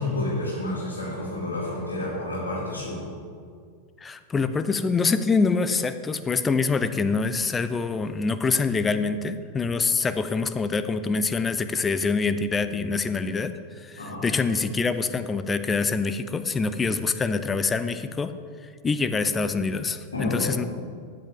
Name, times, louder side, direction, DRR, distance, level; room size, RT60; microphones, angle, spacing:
voice 1, 0.0-3.1 14.0-14.2 20.1-20.7, left 2 dB, 75° left, -7 dB, 2.6 m, -30 dB
voice 2, 4.0-18.3 18.8-20.6, left 4 dB, 15° left, 11 dB, 0.5 m, -25 dB
13.0 x 8.0 x 3.7 m, 2.1 s
figure-of-eight pair, 90°, 0 cm